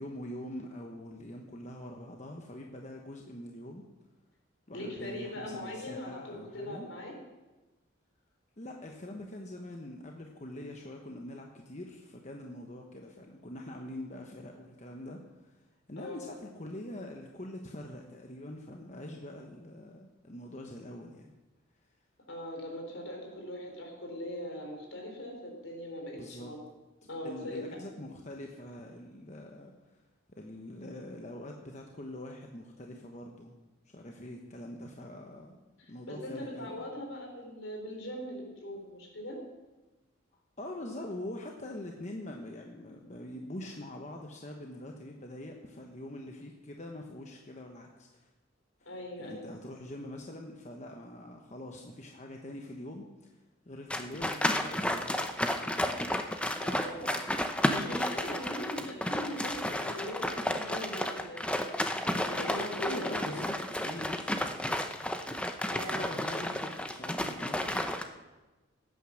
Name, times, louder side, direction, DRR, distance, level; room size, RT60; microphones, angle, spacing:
voice 1, 0.0-3.8 4.7-6.9 8.6-21.3 26.1-26.5 27.2-30.0 30.4-33.5 33.8-35.6 35.9-36.9 40.6-48.3 48.8-48.9 49.2-56.1 62.8-64.8 65.9-67.9, left 1 dB, 35° left, 1 dB, 1.1 m, -44 dB
voice 2, 4.7-7.2 16.0-16.2 22.3-26.6 27.1-27.8 35.8-39.4 48.9-49.4 56.6-61.6 62.1-63.5 65.6-66.5, left 1 dB, 70° left, 1 dB, 4.1 m, -40 dB
sound 1, 53.9-68.0, left 1 dB, 5° left, 0.7 m, -32 dB
16.5 x 9.2 x 6.4 m, 1.1 s
head